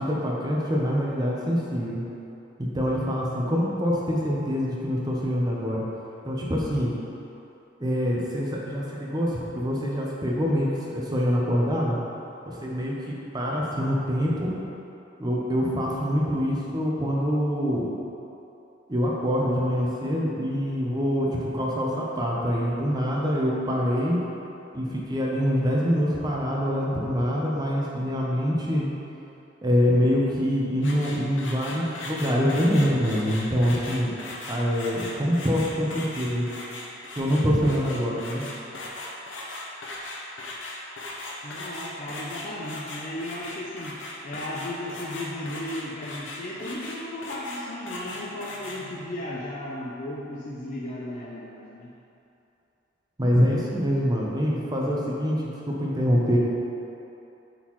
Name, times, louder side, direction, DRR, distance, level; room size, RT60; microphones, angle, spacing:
voice 1, 0.0-2.0 2.6-5.8 6.2-6.9 7.8-12.0 12.5-14.6 15.2-17.9 18.9-24.2 24.7-28.9 29.6-34.1 34.5-36.5 37.2-38.5 53.2-56.4, equal, 20° right, -3 dB, 0.8 m, -25 dB
sound 1, 30.8-48.8, left 2 dB, 90° left, 0.8 m, -38 dB
voice 2, 41.4-51.9, left 1 dB, 40° left, -6 dB, 0.6 m, -35 dB
8.2 x 3.9 x 3.1 m, 2.9 s
head